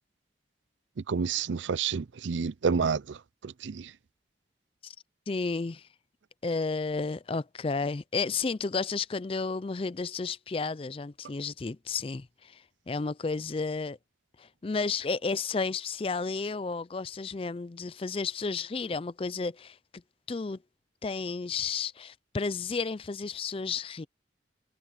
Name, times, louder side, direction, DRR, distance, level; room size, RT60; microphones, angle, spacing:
voice 1, 1.1-3.2 3.4-3.9, right 5 dB, 85° right, 0.5 m, -29 dB
voice 2, 5.3-5.8 6.4-12.6 12.9-14.0 14.4-19.8 20.3-20.6 21.0-24.1, left 4 dB, 30° left, 0.4 m, -32 dB
head